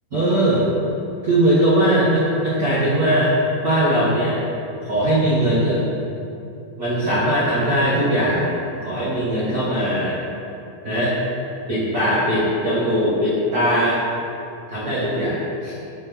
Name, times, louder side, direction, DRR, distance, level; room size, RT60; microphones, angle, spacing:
voice 1, 0.1-0.7 1.2-3.3 3.6-4.4 4.8-5.9 6.8-8.6 8.8-10.2 10.8-11.2 11.7-14.0 14.7-15.7, right 1 dB, 65° right, -9 dB, 0.9 m, -20 dB
8.9 x 3.7 x 6.1 m, 2.8 s
omnidirectional pair, 3.9 m